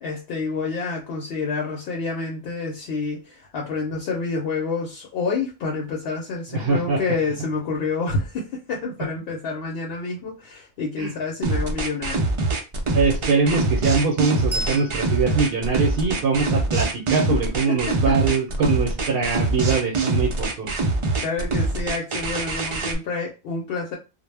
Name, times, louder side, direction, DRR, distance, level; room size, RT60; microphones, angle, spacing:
voice 1, 0.0-12.3 17.3-17.4 17.7-18.2 21.2-24.0, left 4 dB, 75° left, -1 dB, 0.8 m, -28 dB
voice 2, 6.5-7.0 11.0-11.1 12.9-20.7, right 4 dB, 70° right, 2 dB, 0.8 m, -22 dB
sound 1, 11.4-23.0, right 2 dB, 50° right, 0.4 m, -24 dB
Bell, 14.5-17.6, equal, ahead, 0.6 m, -37 dB
2.0 x 2.0 x 3.2 m, 0.29 s
omnidirectional pair, 1.1 m